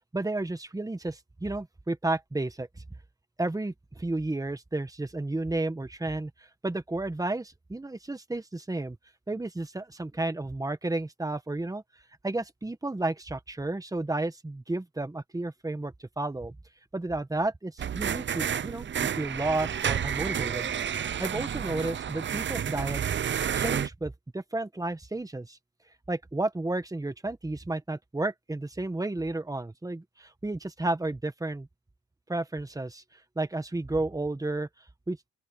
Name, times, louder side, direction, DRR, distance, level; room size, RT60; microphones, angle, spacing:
voice 1, 0.1-2.7 3.4-9.0 9.3-11.8 12.2-16.5 16.9-20.7 21.2-23.1 23.5-25.6 26.1-31.7 32.3-33.0 33.3-34.7 35.1-35.2, right 2 dB, 10° right, 1.6 m, -32 dB
sound 1, 17.8-23.9, right 8 dB, 40° right, 0.7 m, -30 dB
open air
cardioid pair, 90°, 30 cm